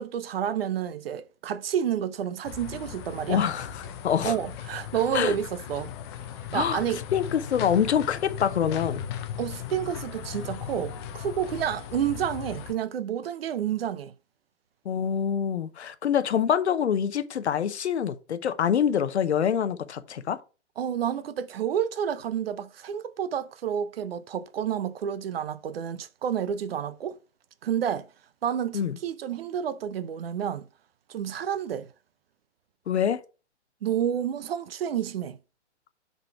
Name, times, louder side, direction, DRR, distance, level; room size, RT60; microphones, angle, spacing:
voice 1, 0.0-3.4 4.2-5.9 6.5-7.0 9.4-14.1 20.8-27.2 27.6-28.1 28.4-30.7 31.1-31.9 33.8-35.4, right 9 dB, 55° right, 0.7 m, -30 dB
sound 1, 2.4-12.7, left 9 dB, 25° left, 0.6 m, -37 dB
voice 2, 3.3-4.3 5.1-5.3 6.5-6.8 7.1-9.1 14.8-20.4 28.7-29.0 32.9-33.2, left 8 dB, 65° left, 0.8 m, -25 dB
5.4 x 4.1 x 5.7 m
hypercardioid pair, 130°, 35 cm